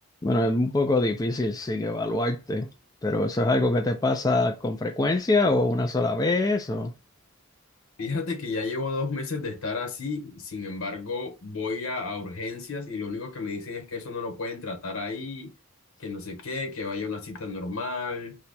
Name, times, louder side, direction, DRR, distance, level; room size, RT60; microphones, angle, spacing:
voice 1, 0.2-2.7 3.0-6.9, left 2 dB, 20° left, 0.4 m, -24 dB
voice 2, 8.0-15.5 16.0-18.4, left 3 dB, 85° left, 1.1 m, -32 dB
2.8 x 2.2 x 4.0 m
head